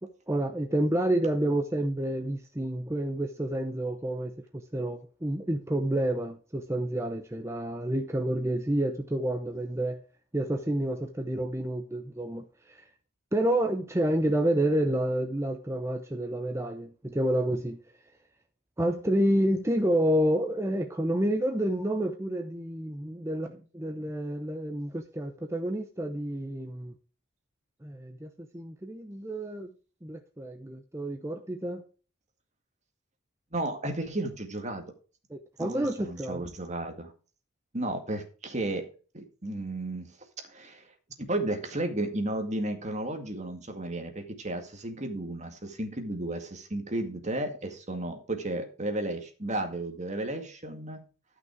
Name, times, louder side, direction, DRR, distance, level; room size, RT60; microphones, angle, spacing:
voice 1, 0.0-10.0 10.3-12.9 13.3-17.8 18.8-26.9 27.8-29.7 30.0-31.8 35.3-36.4, right 1 dB, 15° right, 0.8 m, -29 dB
voice 2, 33.5-34.8 35.6-37.1 37.7-38.8 39.1-40.1 40.5-40.8 41.2-51.1, right 1 dB, 35° right, 2.1 m, -33 dB
12.5 x 6.0 x 4.8 m
head